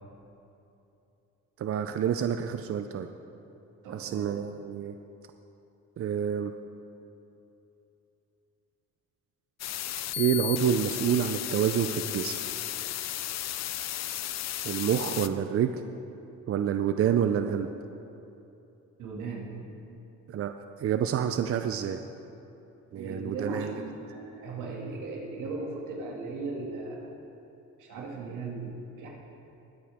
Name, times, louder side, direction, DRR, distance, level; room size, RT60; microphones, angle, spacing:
voice 1, 1.6-3.1 3.9-5.0 6.0-6.5 10.2-12.4 14.6-15.8 16.5-17.7 20.3-20.5 20.8-22.0 22.9-23.8, right 8 dB, 50° right, 8 dB, 0.5 m, -28 dB
voice 2, 3.8-4.4 19.0-19.5 22.9-27.1 27.8-29.1, right 3 dB, 90° right, -2 dB, 2.4 m, -37 dB
sound 1, 9.6-15.3, left 12 dB, 60° left, 0.5 m, -34 dB
21.0 x 8.7 x 3.6 m, 2.9 s
cardioid pair, 90°, 30 cm